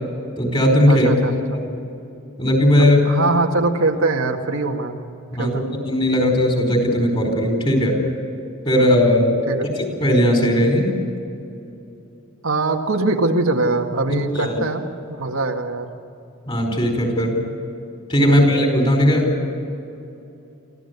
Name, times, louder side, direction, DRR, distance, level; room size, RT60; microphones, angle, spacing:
voice 1, 0.4-1.1 1.5-1.6 2.4-3.0 5.3-8.0 8.6-9.3 9.8-10.9 14.1-14.6 16.5-17.4 18.1-19.3, equal, 25° left, 2 dB, 4.7 m, -17 dB
voice 2, 0.9-1.3 3.1-4.9 5.4-5.6 9.5-9.7 12.4-15.9 18.2-18.4, right 2 dB, 90° right, 2 dB, 1.9 m, -22 dB
25.0 x 15.5 x 8.2 m, 2.7 s
head